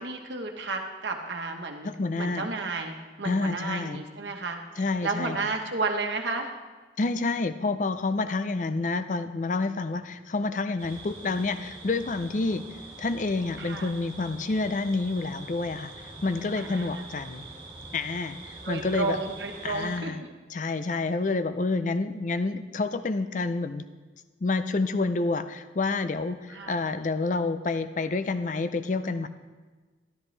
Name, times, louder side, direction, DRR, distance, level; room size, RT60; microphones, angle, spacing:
voice 1, 0.0-1.9 2.2-6.5 13.6-13.9 16.6-17.1 18.6-20.3 26.5-26.8, right 3 dB, 75° right, 3 dB, 1.1 m, -32 dB
voice 2, 1.8-2.5 3.2-4.0 4.8-5.4 7.0-12.7 13.0-15.9 16.2-17.5 17.9-19.2 19.6-20.2 20.5-23.8 24.4-29.3, left 3 dB, 45° left, 11 dB, 0.5 m, -28 dB
sound 1, 10.8-20.0, right 2 dB, 30° right, 2.6 m, -44 dB
13.0 x 12.5 x 3.3 m, 1.3 s
head